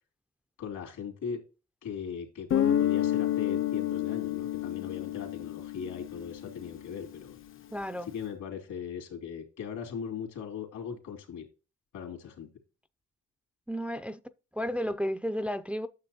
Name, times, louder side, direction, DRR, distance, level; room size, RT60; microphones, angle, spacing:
voice 1, 0.6-1.4 1.8-7.4 8.1-11.4 11.9-12.5, left 7 dB, 80° left, 2.8 m, -39 dB
Guitar, 2.5-7.1, left 11 dB, 45° left, 0.6 m, -30 dB
voice 2, 7.7-8.1 13.7-14.2 14.5-15.9, equal, 5° right, 0.4 m, -32 dB
9.6 x 6.8 x 2.8 m
cardioid pair, 90°, 30 cm